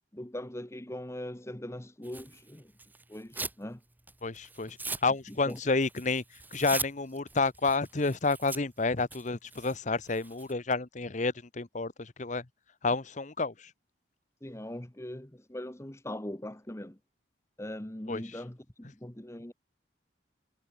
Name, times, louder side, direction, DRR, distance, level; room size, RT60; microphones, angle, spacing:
voice 1, 0.1-2.7 3.1-3.8 5.3-5.6 14.4-17.0 17.6-19.5, left 1 dB, 15° left, 1.1 m, -41 dB
Tearing, 2.0-3.6 4.0-10.5, right 3 dB, 10° right, 1.6 m, -41 dB
voice 2, 4.2-4.8 5.0-6.2 6.5-12.4 12.8-13.5 18.1-18.2, left 3 dB, 40° left, 0.9 m, -30 dB
head